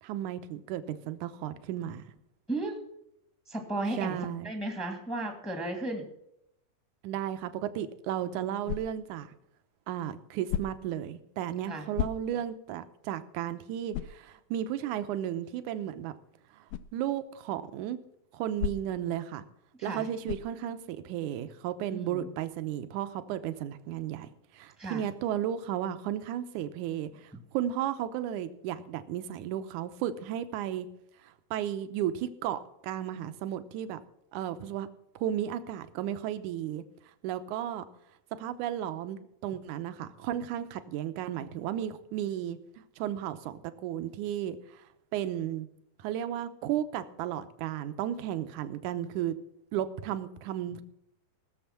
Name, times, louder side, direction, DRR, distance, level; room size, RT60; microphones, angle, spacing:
voice 1, 0.0-2.0 3.9-4.5 7.0-9.3 9.9-16.1 16.5-16.6 16.9-18.0 18.3-19.4 19.8-24.3 24.5-30.9 31.2-34.0 34.3-34.9 35.2-36.8 37.2-37.8 38.4-44.8 45.1-45.7 46.0-49.3 49.7-50.8, right 11 dB, 75° right, 11 dB, 2.0 m, -34 dB
voice 2, 2.5-2.8 3.5-4.2 4.4-6.1 11.6-11.9 19.8-20.1 21.9-22.3 24.8-25.0 50.7-50.8, right 2 dB, 5° left, 3 dB, 0.8 m, -34 dB
sound 1, 8.6-9.2 10.5-11.0 11.9-12.6 13.1-13.2 13.9-14.3 16.7-16.9 18.6-19.1 20.2-20.6, left 10 dB, 85° left, 2.4 m, -34 dB
18.5 x 7.2 x 5.8 m, 0.78 s
omnidirectional pair, 4.1 m